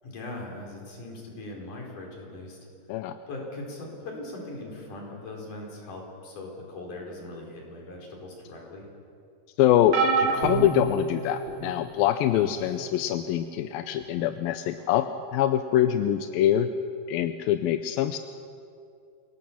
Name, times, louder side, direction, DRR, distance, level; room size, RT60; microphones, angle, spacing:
voice 1, 0.0-2.6 3.3-8.9, left 2 dB, 55° left, -1 dB, 5.8 m, -40 dB
voice 2, 9.6-16.7 17.1-18.2, left 11 dB, 80° left, 9 dB, 2.3 m, -24 dB
sound 1, 9.9-11.7 12.5-12.7 14.0-14.1, right 4 dB, 60° right, 3.3 m, -27 dB
29.0 x 18.0 x 7.2 m, 2.5 s
omnidirectional pair, 4.5 m